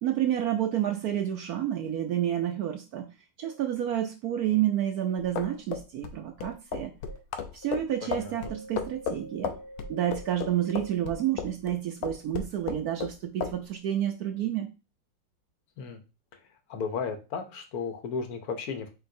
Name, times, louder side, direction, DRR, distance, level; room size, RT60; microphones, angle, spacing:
voice 1, 0.0-3.1 3.4-6.9 7.5-9.6 9.9-14.7, right 11 dB, 75° right, 5 dB, 0.8 m, -29 dB
sound 1, 2.4-2.5 3.4-3.5 4.4-4.5 5.5-5.6 6.4-6.5 7.1-7.2 7.6-7.7 8.1-11.3, equal, 25° left, 0.4 m, -46 dB
sound 2, 5.2-11.7 12.0-13.1 13.4-13.6, left 7 dB, 85° left, 1.4 m, -34 dB
voice 2, 8.0-8.5 15.8-16.0 16.7-18.9, left 5 dB, 60° left, 6 dB, 1.0 m, -34 dB
4.9 x 3.9 x 2.6 m, 0.29 s
omnidirectional pair, 2.2 m